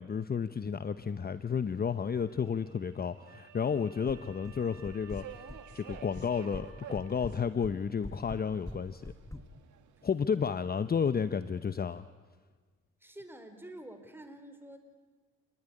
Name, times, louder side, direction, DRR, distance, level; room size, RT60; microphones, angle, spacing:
voice 1, 0.0-5.2 5.7-9.1 10.0-12.0, left 6 dB, 30° left, 12 dB, 0.8 m, -32 dB
Subway metro underground, 1.1-11.6, right 10 dB, 75° right, 2.1 m, -54 dB
Wind instrument woodwind instrument, 3.3-7.2, right 3 dB, 50° right, 6.5 m, -57 dB
sound 1, 4.1-4.6 4.8-5.6 5.9-6.7 6.9-9.4, left 1 dB, 10° left, 1.6 m, -43 dB
voice 2, 13.0-14.8, right 1 dB, 5° right, 7 dB, 4.1 m, -48 dB
28.5 x 20.0 x 9.9 m, 1.4 s
cardioid pair, 90°, 30 cm